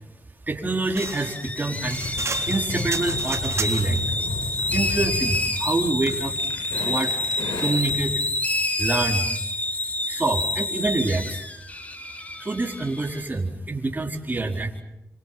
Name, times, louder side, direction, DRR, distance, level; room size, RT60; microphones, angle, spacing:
voice 1, 0.5-4.1 4.7-6.3 6.8-7.2 7.6-8.1 8.8-9.3 10.1-11.5 12.4-14.7, right 2 dB, 30° right, 2 dB, 4.4 m, -26 dB
sound 1, 0.9-4.0, right 4 dB, 50° right, 3.6 m, -33 dB
sound 2, 1.0-13.2, left 2 dB, 25° left, 3.2 m, -28 dB
sound 3, 1.7-8.2, left 3 dB, 85° left, 7.4 m, -33 dB
28.0 x 27.0 x 5.9 m, 0.89 s
cardioid pair, 65°, 6 cm